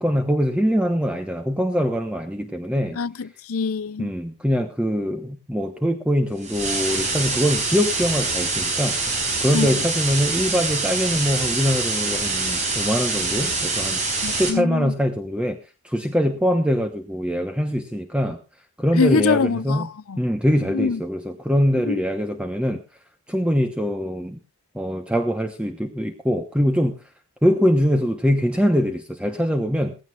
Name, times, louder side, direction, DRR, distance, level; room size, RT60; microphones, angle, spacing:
voice 1, 0.0-3.0 4.0-14.0 14.3-15.6 15.8-18.4 18.8-19.9 20.2-22.8 23.3-24.4 24.7-27.0 27.4-30.0, equal, 5° right, 1.0 m, -23 dB
voice 2, 3.0-4.1 9.5-9.8 14.2-14.9 19.0-20.2 20.7-21.0 21.8-22.0, left 5 dB, 90° left, 0.6 m, -24 dB
sound 1, 6.4-14.5, right 3 dB, 35° right, 5.0 m, -25 dB
19.0 x 15.5 x 2.5 m
head